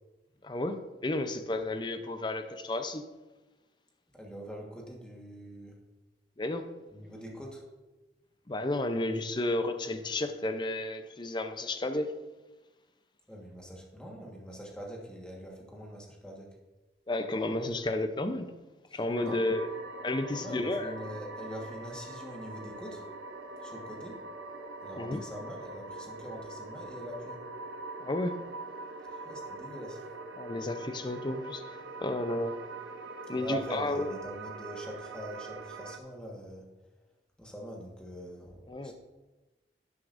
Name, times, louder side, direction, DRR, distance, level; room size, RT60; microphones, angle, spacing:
voice 1, 0.4-3.0 6.4-6.6 8.5-12.1 17.1-18.5 18.9-19.7 20.0-21.0 24.9-25.2 28.0-28.4 30.4-32.5 33.3-34.1 38.7-38.9, left 2 dB, 25° left, 0.6 m, -32 dB
voice 2, 4.1-5.8 6.9-7.6 13.3-16.5 18.9-19.4 20.3-23.1 23.6-24.2 24.8-27.4 29.0-30.0 33.3-36.6 37.4-38.9, equal, 5° left, 1.4 m, -43 dB
sound 1, 19.1-36.0, right 3 dB, 90° right, 0.8 m, -43 dB
11.0 x 9.6 x 2.6 m
head